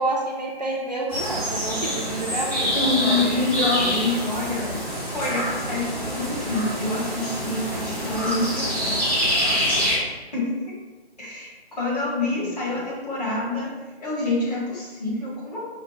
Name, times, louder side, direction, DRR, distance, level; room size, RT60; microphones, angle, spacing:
voice 1, 0.0-3.4 3.8-4.0 12.7-12.8, right 2 dB, 40° right, -2 dB, 0.4 m, -29 dB
sound 1, 1.1-10.0, equal, 10° left, 0.6 m, -26 dB
voice 2, 2.7-4.7 5.1-8.9 9.7-9.9 10.3-10.5 11.2-13.7 14.0-15.6, left 2 dB, 40° left, -6 dB, 1.3 m, -27 dB
4.9 x 2.1 x 3.0 m, 1.2 s
figure-of-eight pair, 145°, 32 cm